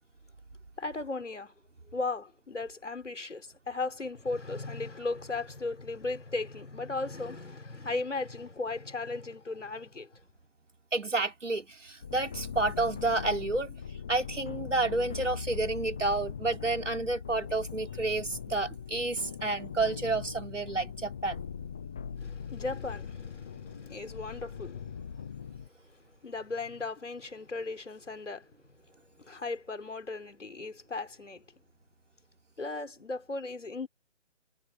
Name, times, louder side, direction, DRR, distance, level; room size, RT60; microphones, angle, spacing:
voice 1, 0.8-1.5 1.9-10.2 22.2-24.9 25.9-28.5 29.2-31.5 32.6-33.9, left 3 dB, 80° left, 3.9 m, -36 dB
voice 2, 10.9-13.7 14.1-21.5, right 3 dB, 80° right, 5.1 m, -30 dB
sound 1, 12.0-25.7, left 7 dB, 5° left, 0.5 m, -40 dB
figure-of-eight pair, 145°, 36 cm